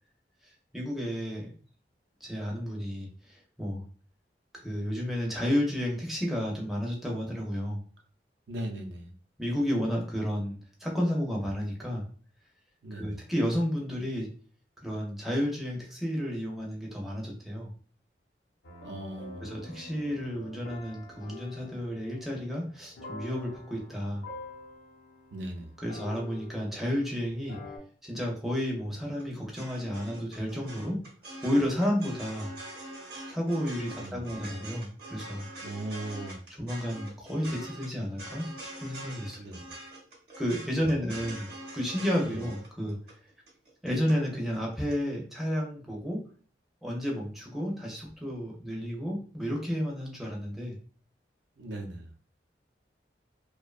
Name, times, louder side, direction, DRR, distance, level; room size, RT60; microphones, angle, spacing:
voice 1, 0.4-1.5 2.2-3.8 4.5-7.8 9.4-12.0 12.9-14.3 14.8-17.7 19.4-24.2 25.8-27.6 28.0-31.0 31.4-32.5 33.3-35.5 36.6-38.5 38.8-39.4 40.4-41.5 41.7-43.0 43.8-46.2 46.8-50.8, equal, ahead, -2 dB, 0.4 m, -31 dB
voice 2, 8.5-9.1 12.8-13.2 18.8-19.5 25.3-25.7 34.0-34.2 35.6-36.4 39.4-39.7 40.8-41.0 42.2-42.5 51.6-52.1, right 1 dB, 75° right, 3 dB, 0.5 m, -38 dB
sound 1, 18.6-27.1 27.5-27.8, left 3 dB, 70° left, 0.7 m, -47 dB
sound 2, 29.0-44.2 44.5-44.9, right 1 dB, 55° right, 0.8 m, -44 dB
2.5 x 2.1 x 2.3 m, 0.42 s
head